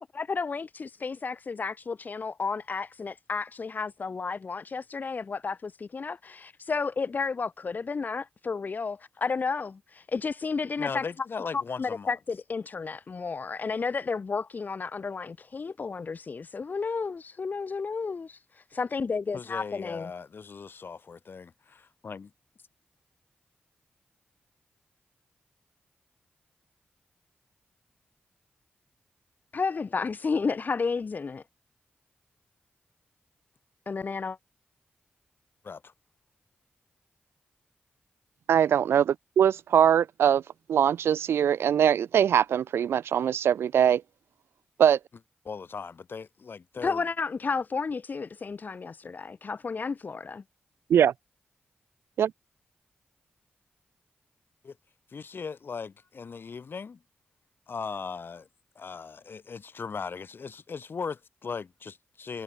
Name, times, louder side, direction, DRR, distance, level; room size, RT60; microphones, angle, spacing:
voice 1, 0.1-11.0 11.5-20.1 29.5-31.4 33.9-34.4 46.8-50.4, left 4 dB, 45° left, 0.4 m, -32 dB
voice 2, 10.8-12.2 19.3-22.3 35.6-35.9 45.4-47.0 54.6-54.8 55.1-57.0 57.7-58.5 58.8-62.4, left 5 dB, 60° left, 2.5 m, -38 dB
voice 3, 38.5-40.4 40.7-44.0 44.8-45.0 50.9-51.1 52.2-52.3, right 9 dB, 90° right, 0.4 m, -22 dB
cardioid pair, 55°, 4 cm